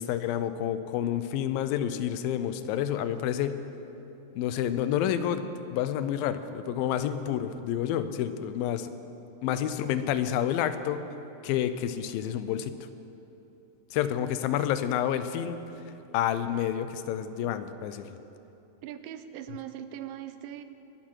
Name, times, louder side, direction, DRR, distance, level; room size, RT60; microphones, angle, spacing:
voice 1, 0.0-3.6 4.3-8.9 9.4-11.1 11.4-12.7 13.9-15.6 16.1-18.2, left 10 dB, 85° left, 11 dB, 2.4 m, -29 dB
voice 2, 18.8-20.6, right 10 dB, 85° right, 11 dB, 2.3 m, -40 dB
22.0 x 11.5 x 4.6 m, 2.9 s
omnidirectional pair, 4.1 m